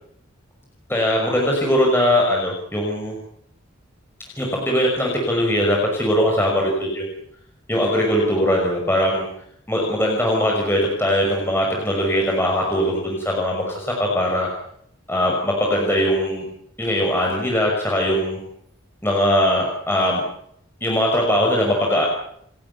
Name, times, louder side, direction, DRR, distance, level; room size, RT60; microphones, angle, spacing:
voice 1, 0.9-3.1 4.3-7.1 7.7-9.3 9.7-14.5 15.1-16.5 16.8-18.4 19.0-20.2 20.8-22.1, equal, 10° left, -1 dB, 6.0 m, -20 dB
30.0 x 14.0 x 9.7 m, 0.70 s
head